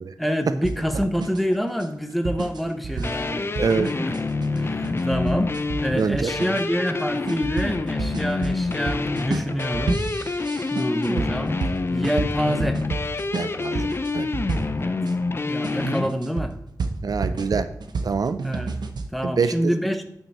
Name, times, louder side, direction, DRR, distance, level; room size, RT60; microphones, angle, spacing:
voice 1, 0.2-4.1 4.5-5.5 5.8-10.0 10.7-11.6 11.9-12.8 14.8-15.0 15.5-16.6 18.4-18.7 19.1-20.0, equal, ahead, 7 dB, 0.8 m, -27 dB
sound 1, 0.6-15.1 15.6-19.1, right 3 dB, 90° right, 0.8 m, -31 dB
sound 2, 3.0-16.1, left 3 dB, 35° left, 0.5 m, -27 dB
voice 2, 3.6-3.9 6.0-6.5 13.3-14.3 17.0-17.7 18.0-18.4 19.2-19.7, right 5 dB, 60° right, 11 dB, 0.4 m, -25 dB
8.9 x 5.6 x 4.2 m, 0.75 s
wide cardioid pair, 115°, 7 cm